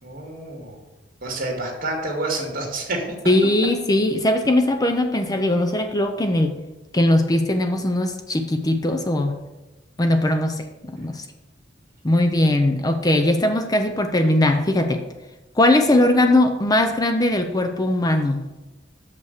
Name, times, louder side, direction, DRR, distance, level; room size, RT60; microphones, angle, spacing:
voice 1, 0.0-0.8 1.2-3.0, right 2 dB, 50° right, 1 dB, 2.0 m, -28 dB
voice 2, 3.3-6.6 6.9-9.4 10.0-11.3 12.0-15.0 15.6-18.4, left 1 dB, 20° left, 6 dB, 0.5 m, -20 dB
6.7 x 5.6 x 6.4 m, 1.1 s
head